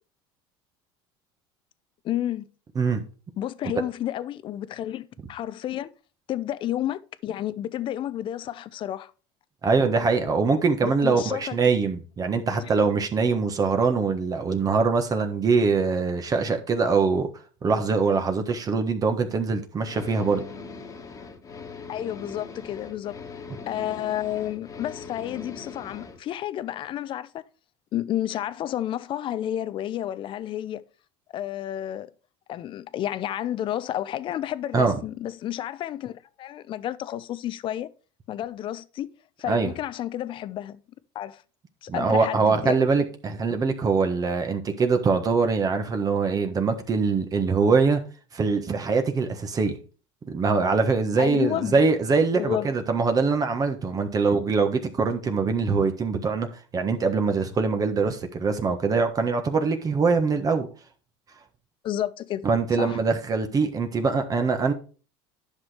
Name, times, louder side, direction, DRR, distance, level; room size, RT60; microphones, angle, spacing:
voice 1, 2.0-2.5 3.4-5.9 6.3-9.1 10.8-11.8 12.5-12.7 21.9-23.2 23.7-27.4 27.9-30.8 31.3-32.1 32.5-37.9 38.3-39.1 39.4-40.8 41.1-41.4 41.8-42.8 51.2-51.8 52.3-52.7 61.8-62.5 62.8-63.0, left 12 dB, 45° left, 0.7 m, -31 dB
voice 2, 9.6-17.3 17.6-20.4 34.7-35.0 39.5-39.7 41.9-48.0 48.3-49.8 50.3-56.5 56.7-60.7 62.4-64.7, right 4 dB, 30° right, 1.3 m, -23 dB
sound 1, 19.8-26.2, left 4 dB, 25° left, 1.5 m, -41 dB
10.5 x 6.0 x 3.4 m
supercardioid pair, 100°, 12 cm